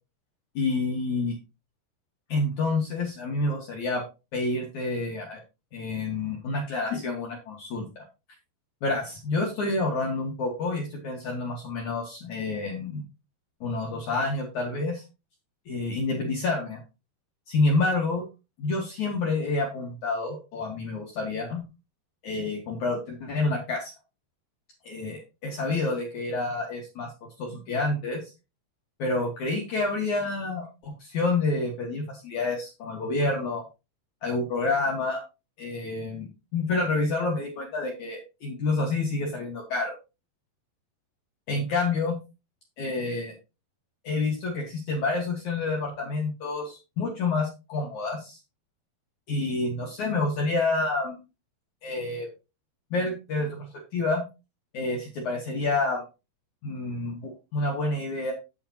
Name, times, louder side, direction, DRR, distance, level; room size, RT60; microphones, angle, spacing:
voice 1, 0.5-1.4 2.3-4.0 4.3-5.4 5.7-8.0 8.8-13.0 13.6-15.0 15.7-16.8 17.5-18.2 18.6-21.6 22.2-23.9 24.8-27.1 27.4-28.2 29.0-33.6 34.2-35.2 35.6-40.0 41.5-42.2 42.8-43.3 44.0-48.4 49.3-51.2 51.8-52.3 52.9-54.2 54.7-56.0 56.6-58.3, left 3 dB, 55° left, -1 dB, 2.3 m, -28 dB
8.5 x 8.2 x 2.8 m, 0.28 s
omnidirectional pair, 5.0 m